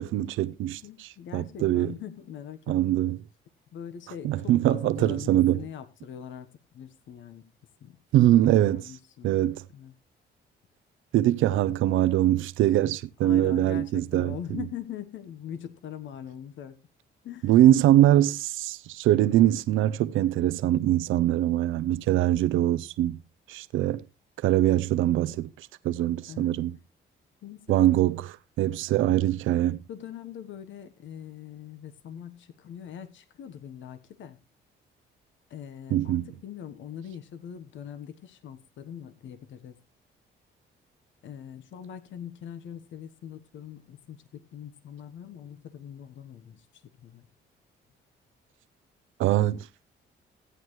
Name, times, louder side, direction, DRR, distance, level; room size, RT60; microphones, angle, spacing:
voice 1, 0.0-1.9 2.7-3.2 4.2-5.6 8.1-8.9 9.2-9.6 11.1-14.3 17.4-23.2 23.5-24.0 24.4-26.8 27.7-29.8 35.9-36.3 49.2-49.7, right 13 dB, 85° right, 0.6 m, -23 dB
voice 2, 0.8-3.0 3.7-6.5 6.7-7.5 7.8-8.0 8.7-9.5 9.7-9.9 13.2-16.8 17.2-17.8 26.3-26.6 27.4-27.9 29.9-34.4 35.5-39.8 41.2-46.6 47.0-47.3, left 9 dB, 70° left, 1.2 m, -42 dB
16.0 x 9.1 x 3.2 m
cardioid pair, 90°, 20 cm